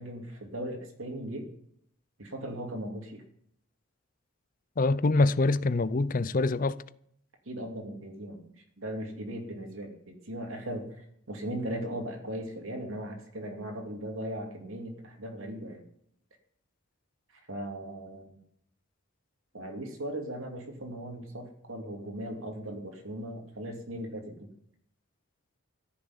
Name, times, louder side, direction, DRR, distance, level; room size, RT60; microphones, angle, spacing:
voice 1, 0.0-1.5 2.2-3.2 7.4-8.4 8.8-11.0 11.3-15.8 17.5-18.4 19.5-24.5, right 1 dB, 80° right, 2.6 m, -38 dB
voice 2, 4.8-6.8, left 3 dB, 40° left, 0.5 m, -25 dB
14.0 x 6.9 x 9.6 m
head